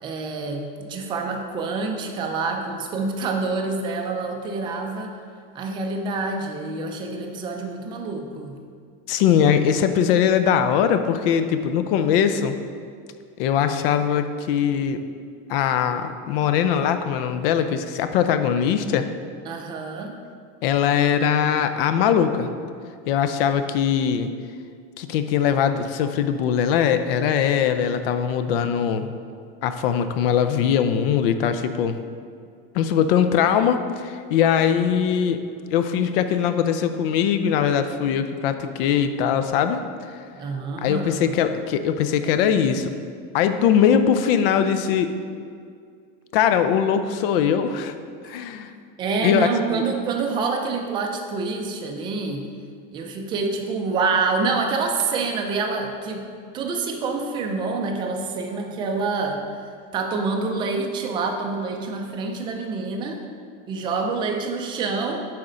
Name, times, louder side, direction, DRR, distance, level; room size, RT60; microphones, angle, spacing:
voice 1, 0.0-5.2 5.5-8.6 19.5-20.2 40.3-41.3 49.0-52.5 52.9-56.2 56.5-59.4 59.9-63.2 63.7-65.2, right 4 dB, 15° right, 2 dB, 0.4 m, -27 dB
voice 2, 9.1-12.6 13.4-15.0 15.5-19.1 20.6-22.5 23.1-24.3 25.0-29.1 29.6-32.0 32.7-35.4 35.7-39.8 40.8-42.9 43.3-45.2 46.3-47.9 48.2-48.7 49.2-49.5 49.7-49.8, left 8 dB, 75° left, 9 dB, 0.6 m, -21 dB
6.4 x 4.2 x 5.0 m, 2.2 s
cardioid pair, 175°, 29 cm